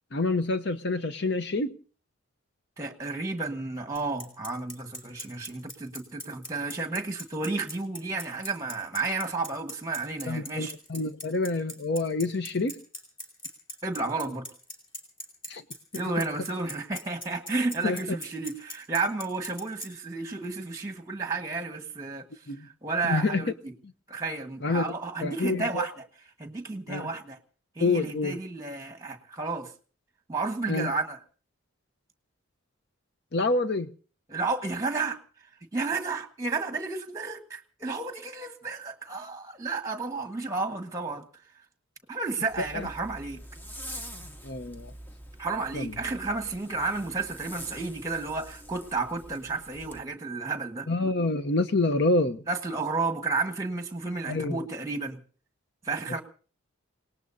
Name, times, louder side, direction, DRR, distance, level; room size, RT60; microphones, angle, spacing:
voice 1, 0.1-1.8 10.3-12.8 15.5-15.6 17.8-18.2 22.5-22.7 23.1-23.5 24.6-24.9 25.2-25.9 26.9-27.1 27.8-28.4 30.7-30.9 33.3-33.9 42.6-42.9 44.4-44.9 45.7-45.9 50.9-52.4 54.3-54.7, left 2 dB, 50° left, 0.8 m, -27 dB
voice 2, 2.8-10.7 13.8-14.5 16.0-22.2 22.6-23.7 24.1-26.1 26.4-27.4 27.8-29.7 30.3-31.2 34.3-35.2 35.7-41.2 42.1-43.4 45.4-50.9 52.5-55.2 55.8-56.2, right 3 dB, 15° right, 1.4 m, -32 dB
Bicycle, 4.0-19.9, left 1 dB, 25° left, 4.3 m, -40 dB
Zipper (clothing), 42.5-50.0, equal, 10° left, 0.7 m, -45 dB
28.5 x 18.5 x 2.7 m
head